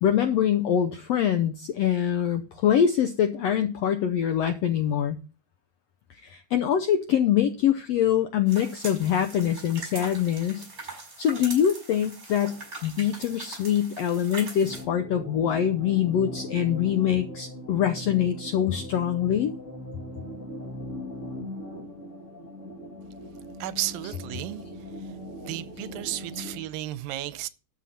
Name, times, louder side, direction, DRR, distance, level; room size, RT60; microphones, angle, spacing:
voice 1, 0.0-5.2 6.2-10.6 11.2-19.5, left 9 dB, 80° left, 1.5 m, -24 dB
sound 1, 8.5-14.8, right 3 dB, 25° right, 5.7 m, -41 dB
sound 2, 14.6-26.6, left 1 dB, 25° left, 1.9 m, -40 dB
voice 2, 23.6-24.6 24.9-25.2 25.4-27.5, right 14 dB, 85° right, 2.5 m, -33 dB
12.5 x 7.5 x 4.2 m
omnidirectional pair, 4.0 m